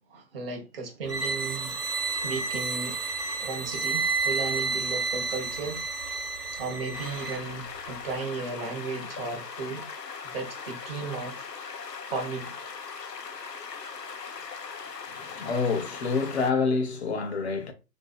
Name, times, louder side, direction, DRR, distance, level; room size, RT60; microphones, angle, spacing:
voice 1, 0.1-1.8 2.2-3.0 3.4-5.8 6.5-9.9 10.2-11.5 12.1-12.5, right 4 dB, 35° right, 0.7 m, -35 dB
sound 1, 1.1-7.4, right 4 dB, 65° right, 1.1 m, -30 dB
sound 2, 6.9-16.5, left 5 dB, 85° left, 0.7 m, -40 dB
voice 2, 15.1-17.7, left 4 dB, 45° left, 0.7 m, -27 dB
3.8 x 2.7 x 2.3 m
figure-of-eight pair, 130°, 48 cm